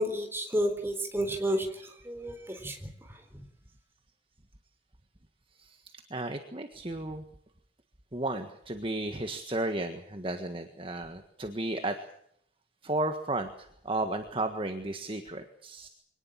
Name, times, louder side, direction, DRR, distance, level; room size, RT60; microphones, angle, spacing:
voice 1, 0.0-3.5, equal, 15° right, 5 dB, 3.9 m, -32 dB
voice 2, 6.1-7.2 8.1-12.0 12.8-15.9, right 2 dB, 30° right, 6 dB, 1.6 m, -33 dB
24.5 x 19.0 x 7.5 m, 0.70 s
head